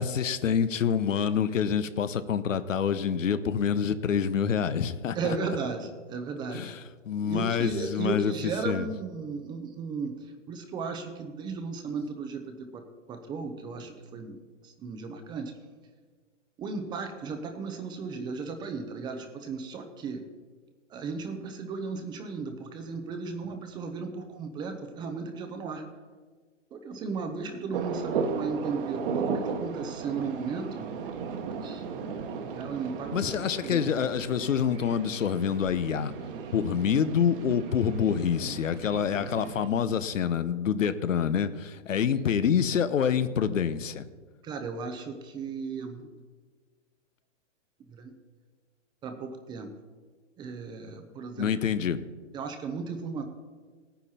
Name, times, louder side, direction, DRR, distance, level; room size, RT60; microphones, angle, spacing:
voice 1, 0.0-5.4 6.5-8.9 33.1-36.1 36.5-44.0 51.4-52.0, left 7 dB, 85° left, 13 dB, 1.0 m, -27 dB
voice 2, 5.1-6.7 7.2-15.5 16.6-20.3 20.9-25.8 26.7-30.9 31.6-31.8 32.5-33.4 33.6-33.8 42.1-42.2 44.4-46.1 47.9-48.1 49.0-49.7 50.4-51.6 52.3-53.2, right 4 dB, 10° right, 6 dB, 0.7 m, -35 dB
sound 1, 27.7-39.7, right 5 dB, 45° right, 1.4 m, -36 dB
16.5 x 9.8 x 4.3 m, 1.5 s
hypercardioid pair, 145°, 38 cm